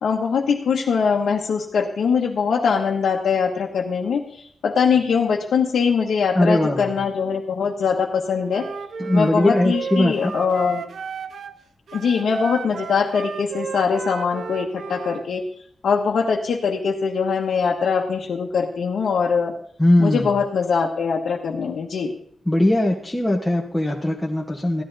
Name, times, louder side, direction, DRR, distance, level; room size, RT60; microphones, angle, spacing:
voice 1, 0.0-8.7 9.1-10.8 11.9-15.4 15.8-19.5 20.0-22.1, left 6 dB, 85° left, -1 dB, 1.2 m, -22 dB
voice 2, 6.3-6.9 9.0-10.4 19.8-20.3 22.5-24.8, left 1 dB, 10° left, -2 dB, 1.2 m, -20 dB
Wind instrument woodwind instrument, 8.5-11.6 11.9-15.3, right 6 dB, 70° right, 0.7 m, -34 dB
14.5 x 11.0 x 4.1 m, 0.64 s
wide cardioid pair, 115°, 0 cm